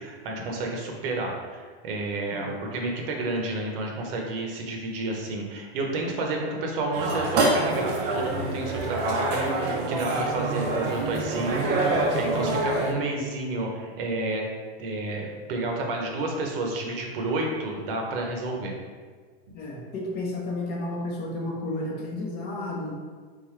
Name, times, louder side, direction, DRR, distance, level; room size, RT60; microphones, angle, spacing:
voice 1, 0.0-14.4 14.8-18.7, right 2 dB, 60° right, 1 dB, 1.0 m, -30 dB
sound 1, 6.9-12.9, right 2 dB, 35° right, 0.6 m, -26 dB
voice 2, 19.5-22.9, left 2 dB, 30° left, -2 dB, 0.8 m, -32 dB
3.9 x 3.8 x 3.2 m, 1.5 s
supercardioid pair, 145°, 32 cm